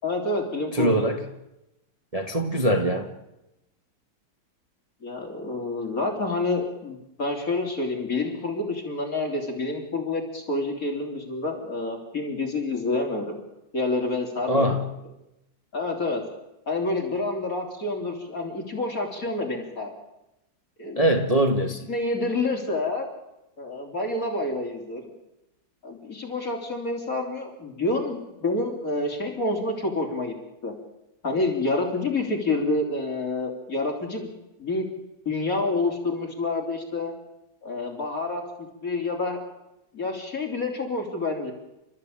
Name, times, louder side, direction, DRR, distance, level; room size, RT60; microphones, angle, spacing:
voice 1, 0.0-1.1 5.0-13.4 13.7-14.7 15.7-16.2 16.7-19.9 20.8-21.1 21.9-23.1 23.6-25.0 25.8-30.3 30.6-30.7 31.2-34.3 34.6-34.9 35.3-37.1 37.6-38.4 38.8-39.4 39.9-41.5, left 2 dB, 45° left, 1 dB, 4.1 m, -28 dB
voice 2, 0.7-1.2 2.1-3.1 14.5-14.8 21.0-21.9, right 1 dB, 20° right, 3 dB, 1.6 m, -22 dB
29.0 x 14.0 x 8.8 m, 0.91 s
omnidirectional pair, 2.0 m